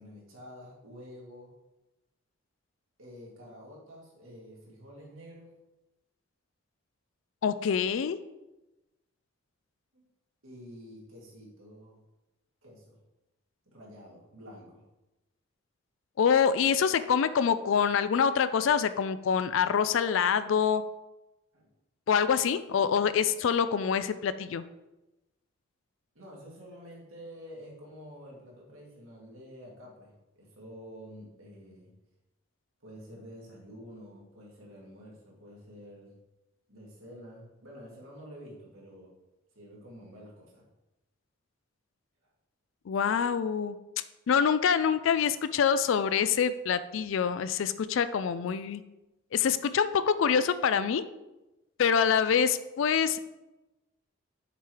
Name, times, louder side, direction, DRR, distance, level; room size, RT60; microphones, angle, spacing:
voice 1, 0.0-1.5 3.0-5.5 9.9-10.0 10.4-12.0 12.6-13.0 13.7-14.8 21.5-21.7 26.1-31.9 32.8-36.1 36.7-39.1 39.5-40.7, equal, 80° right, -3 dB, 2.4 m, -49 dB
voice 2, 7.4-8.2 16.2-20.8 22.1-24.6 42.9-43.8 44.3-48.8 49.3-51.0 51.8-53.2, left 7 dB, 70° left, 13 dB, 0.4 m, -25 dB
6.7 x 4.6 x 4.8 m, 1.0 s
head